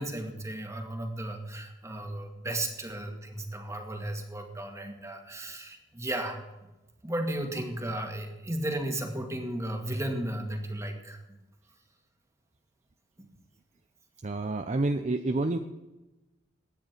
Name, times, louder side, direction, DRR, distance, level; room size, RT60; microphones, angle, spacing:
voice 1, 0.0-6.4 7.0-11.2 13.2-13.3, right 1 dB, 15° right, 3 dB, 1.9 m, -34 dB
voice 2, 14.2-15.6, right 2 dB, 35° right, 7 dB, 0.6 m, -29 dB
22.0 x 9.3 x 4.5 m, 1.0 s
head